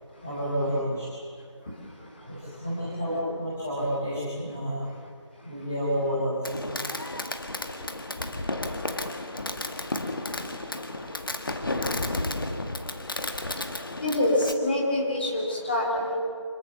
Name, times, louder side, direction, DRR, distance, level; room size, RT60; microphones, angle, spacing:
voice 1, 0.2-1.0 2.2-4.8 5.4-6.8, equal, 5° left, -10 dB, 0.8 m, -30 dB
voice 2, 1.6-2.7 5.4-5.6 6.9-16.2, left 1 dB, 20° left, -2 dB, 3.2 m, -32 dB
Fireworks, 6.4-14.5, left 2 dB, 45° left, 1.7 m, -32 dB
26.0 x 22.5 x 7.0 m, 2.1 s
figure-of-eight pair, 175°, 16 cm